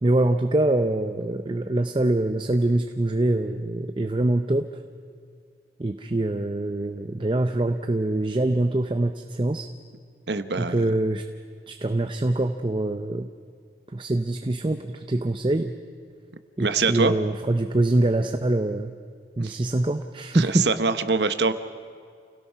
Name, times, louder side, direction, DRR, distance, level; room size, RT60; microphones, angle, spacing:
voice 1, 0.0-4.8 5.8-9.7 10.6-11.2 11.7-13.3 13.9-15.7 16.6-18.9 19.4-20.7, right 2 dB, 30° right, 7 dB, 0.6 m, -24 dB
voice 2, 10.3-10.9 16.6-17.1 19.4-19.6 20.3-21.5, right 4 dB, 75° right, 11 dB, 0.9 m, -24 dB
28.5 x 17.5 x 5.7 m, 2.2 s
head